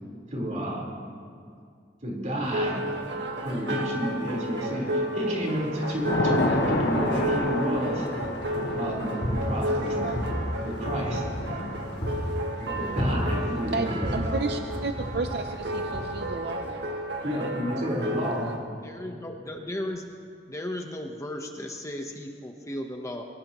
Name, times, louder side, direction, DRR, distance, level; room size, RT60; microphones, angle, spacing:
voice 1, 0.3-0.9 2.0-2.9 3.4-8.1 8.8-10.3 10.6-11.2 12.6-14.1 17.2-18.5, equal, 45° right, -3 dB, 4.4 m, -30 dB
sound 1, 2.4-18.6, right 1 dB, 80° right, 1.8 m, -32 dB
Thunder / Rain, 4.2-4.8 5.2-16.3, left 1 dB, 70° left, 1.5 m, -33 dB
sound 2, 8.2-8.6 9.0-9.8 10.1-11.6 12.0-12.4 13.0-13.6 14.0-14.4 15.0-15.5 15.9-16.0, equal, 40° left, 4.8 m, -31 dB
voice 2, 13.7-16.9 18.4-18.5, right 3 dB, 65° right, 6 dB, 0.7 m, -32 dB
voice 3, 18.8-20.1 20.5-23.3, left 1 dB, 20° left, 3 dB, 1.1 m, -35 dB
23.0 x 20.0 x 3.1 m, 2.2 s
head